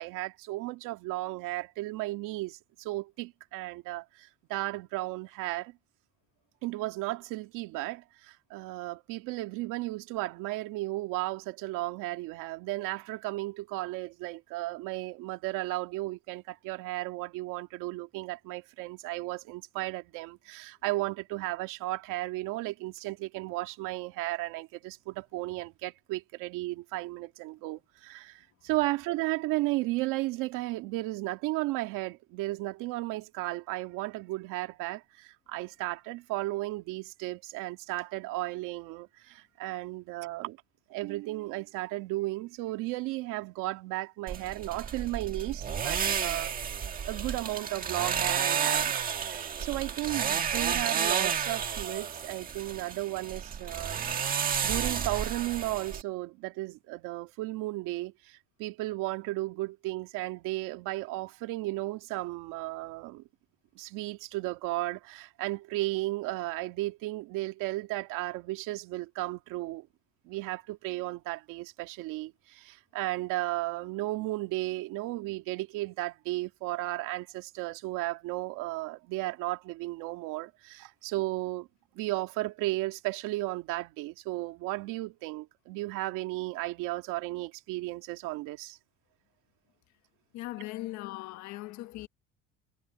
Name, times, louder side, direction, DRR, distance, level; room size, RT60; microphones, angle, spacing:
voice 1, 0.0-5.8 6.6-40.6 40.9-46.5 47.1-54.1 54.6-63.2 63.8-69.9 70.2-81.7 81.9-88.8, right 19 dB, 80° right, 2.2 m, -34 dB
sound 1, 44.3-56.0, right 7 dB, 25° right, 1.7 m, -31 dB
voice 2, 90.3-92.1, left 17 dB, 65° left, 1.5 m, -39 dB
cardioid pair, 165°, 31 cm